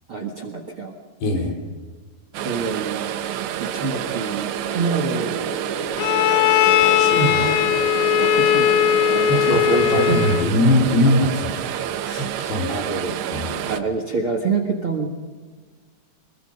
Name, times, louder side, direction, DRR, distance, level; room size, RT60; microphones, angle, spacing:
voice 1, 0.1-0.9 1.3-1.5 2.4-3.1 3.6-5.5 7.3-7.5 8.2-10.2 12.6-13.2 13.6-15.1, right 4 dB, 50° right, 4 dB, 1.7 m, -26 dB
voice 2, 1.2-1.5 6.8-7.5 9.3-9.7 9.9-12.8 13.3-13.6, left 1 dB, 70° left, 1 dB, 5.8 m, -22 dB
sound 1, 2.3-13.8, right 10 dB, 85° right, 3.3 m, -28 dB
sound 2, 4.6-9.5, right 3 dB, 70° right, 4.0 m, -32 dB
Bowed string instrument, 6.0-10.6, left 12 dB, 90° left, 3.0 m, -19 dB
26.5 x 21.0 x 5.4 m, 1.5 s
omnidirectional pair, 5.0 m